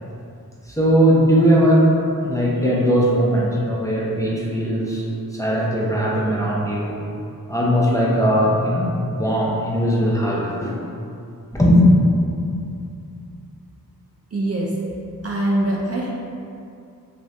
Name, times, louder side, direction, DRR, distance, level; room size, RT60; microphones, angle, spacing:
voice 1, 0.7-2.0 2.2-5.1 5.3-7.0 7.5-10.8 11.5-11.9, equal, 10° left, -6 dB, 0.6 m, -19 dB
voice 2, 14.3-14.7 15.2-16.1, right 1 dB, 40° right, -3 dB, 0.5 m, -22 dB
2.7 x 2.5 x 3.2 m, 2.5 s
cardioid pair, 40°, 37 cm